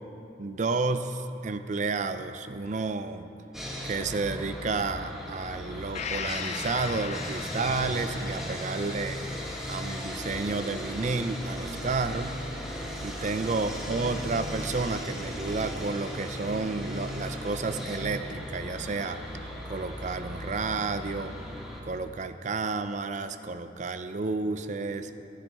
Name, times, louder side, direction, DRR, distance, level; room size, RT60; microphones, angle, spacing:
voice 1, 0.4-3.3 3.8-9.2 9.7-12.4 12.7-19.2 19.7-21.3 21.8-25.1, right 3 dB, 40° right, 10 dB, 0.4 m, -31 dB
Sawing, 3.5-21.8, equal, ahead, 1.3 m, -37 dB
Gong, 5.9-13.6 14.0-14.1, left 7 dB, 35° left, 0.4 m, -41 dB
15.0 x 12.5 x 3.5 m, 2.8 s
head